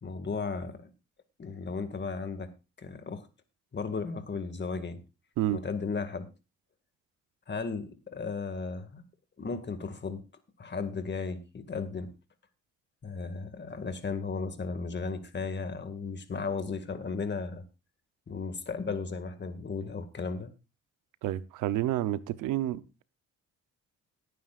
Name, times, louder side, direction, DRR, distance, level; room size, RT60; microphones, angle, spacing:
voice 1, 0.0-0.9 1.4-2.5 2.8-3.3 3.7-5.0 5.5-6.3 7.5-9.0 9.4-10.2 10.6-12.1 13.0-17.6 18.3-20.5, left 4 dB, 35° left, 2.0 m, -35 dB
voice 2, 21.2-23.0, right 13 dB, 90° right, 0.8 m, -30 dB
19.0 x 9.4 x 2.5 m
cardioid pair, 90°, 30 cm